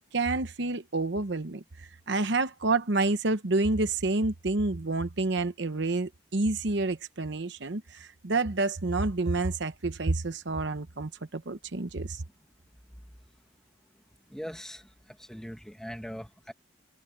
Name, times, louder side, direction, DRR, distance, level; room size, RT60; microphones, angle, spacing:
voice 1, 0.0-12.2, right 3 dB, 55° right, 0.9 m, -29 dB
voice 2, 14.3-16.5, equal, 5° left, 1.8 m, -41 dB
head